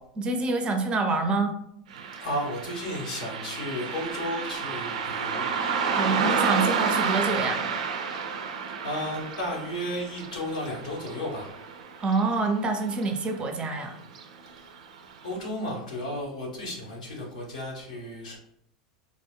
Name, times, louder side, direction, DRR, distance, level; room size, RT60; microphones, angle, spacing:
voice 1, 0.2-1.5 5.9-7.6 12.0-14.0, right 3 dB, 25° right, 6 dB, 0.6 m, -26 dB
Car passing by, 1.9-12.7 13.0-13.1 14.1-14.2 14.7-14.8 15.3-15.4, right 5 dB, 80° right, 0.5 m, -30 dB
voice 2, 2.2-5.4 8.8-11.5 14.6-14.7 15.2-18.4, equal, 85° left, -2 dB, 1.3 m, -33 dB
3.7 x 2.2 x 3.5 m, 0.75 s
hypercardioid pair, 95°, 4 cm